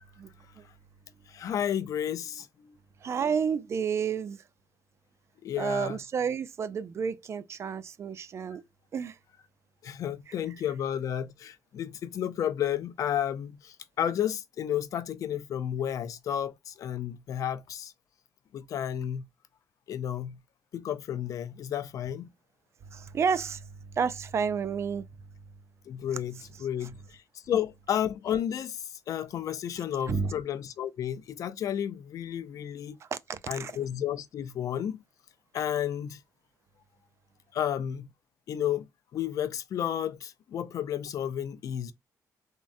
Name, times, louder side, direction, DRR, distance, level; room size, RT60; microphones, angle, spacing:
voice 1, 0.2-0.7 3.0-4.4 5.6-8.6 8.9-9.2 10.3-10.4 22.9-25.1 26.8-26.9 30.1-30.3 33.0-33.8, right 6 dB, 45° right, 0.3 m, -31 dB
voice 2, 1.3-2.7 5.4-6.0 9.8-17.9 18.5-19.3 19.9-20.4 20.7-22.3 25.9-27.2 27.5-33.0 33.5-35.0 35.5-36.2 37.5-38.1 38.5-38.9 39.1-41.9, left 10 dB, 60° left, 0.4 m, -32 dB
3.6 x 2.0 x 2.5 m
cardioid pair, 115°, 6 cm